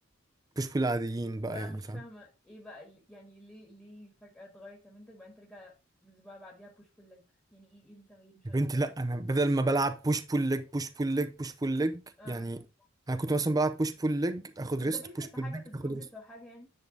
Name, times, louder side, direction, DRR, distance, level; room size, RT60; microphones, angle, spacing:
voice 1, 0.6-1.7 8.4-12.6 13.1-15.5 15.8-16.0, right 2 dB, 20° right, 0.5 m, -30 dB
voice 2, 1.5-8.8 12.2-12.5 14.7-16.7, left 1 dB, 10° left, 1.5 m, -50 dB
9.9 x 3.9 x 3.8 m
head